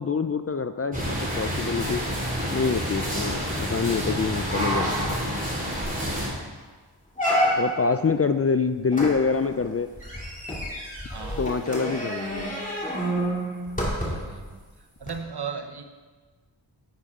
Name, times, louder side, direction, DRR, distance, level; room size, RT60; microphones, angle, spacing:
voice 1, 0.0-2.0 2.5-5.0 7.6-9.9 11.4-12.5, left 5 dB, 35° left, 10 dB, 0.4 m, -26 dB
sound 1, 0.9-6.3, equal, 15° right, 2.9 m, -28 dB
sound 2, 5.9-6.2 6.6-6.7 7.2-7.9 8.9-14.4 15.0-15.1, equal, 15° left, 2.7 m, -29 dB
voice 2, 11.1-11.5 13.9-14.6 15.0-15.8, right 6 dB, 55° right, 7 dB, 0.9 m, -36 dB
10.5 x 8.4 x 3.7 m, 1.4 s
wide cardioid pair, 55°, 47 cm